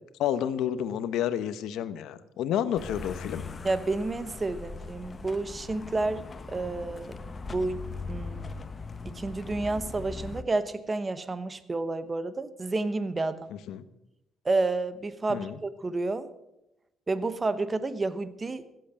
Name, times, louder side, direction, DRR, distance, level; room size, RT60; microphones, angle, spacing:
voice 1, 0.2-3.4 13.7-13.8 15.3-15.6, left 10 dB, 85° left, 13 dB, 0.9 m, -30 dB
sound 1, 2.8-10.4, left 4 dB, 35° left, 1.1 m, -40 dB
voice 2, 3.6-7.2 7.5-8.5 9.0-13.5 14.4-16.3 17.1-18.7, right 3 dB, 30° right, 13 dB, 1.0 m, -30 dB
15.5 x 7.9 x 7.7 m, 0.89 s
cardioid pair, 90°, 0 cm